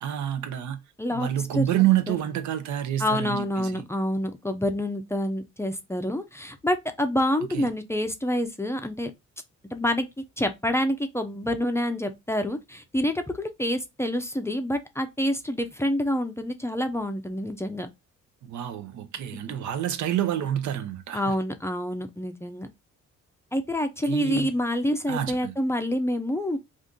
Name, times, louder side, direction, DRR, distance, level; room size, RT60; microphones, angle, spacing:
voice 1, 0.0-0.8 1.1-3.8 7.5-7.7 18.4-21.3 24.0-24.5 25.1-25.5, right 11 dB, 70° right, 0.6 m, -28 dB
voice 2, 1.0-1.7 2.1-2.2 3.0-9.1 9.7-10.1 10.4-17.9 21.1-22.7 23.5-26.6, left 1 dB, 10° left, 0.5 m, -27 dB
2.6 x 2.5 x 3.6 m
cardioid pair, 90°, 30 cm